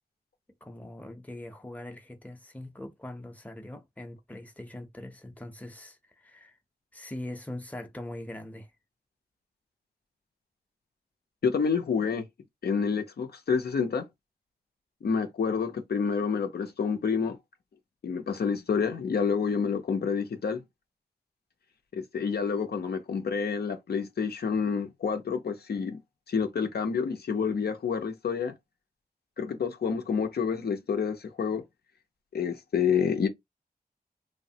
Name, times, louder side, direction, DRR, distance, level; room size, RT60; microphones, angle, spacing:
voice 1, 0.6-6.6 6.9-8.7, left 1 dB, 10° left, 0.6 m, -42 dB
voice 2, 11.4-12.3 12.6-14.1 15.0-17.4 18.0-20.6 21.9-26.0 26.3-28.5 29.4-31.6 32.3-33.3, left 6 dB, 90° left, 0.5 m, -28 dB
3.1 x 2.1 x 2.6 m
wide cardioid pair, 80°, 16 cm